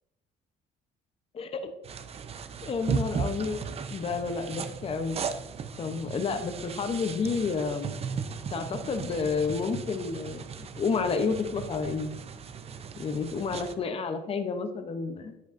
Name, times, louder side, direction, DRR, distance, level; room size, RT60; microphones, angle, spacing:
voice 1, 1.3-1.7 2.6-3.6 3.9-5.2 5.8-7.9 8.5-12.1 13.0-15.3, left 5 dB, 35° left, 8 dB, 0.8 m, -30 dB
sound 1, 1.8-13.7, right 6 dB, 35° right, 0.6 m, -36 dB
10.5 x 8.0 x 2.6 m, 0.96 s
cardioid pair, 110°, 17 cm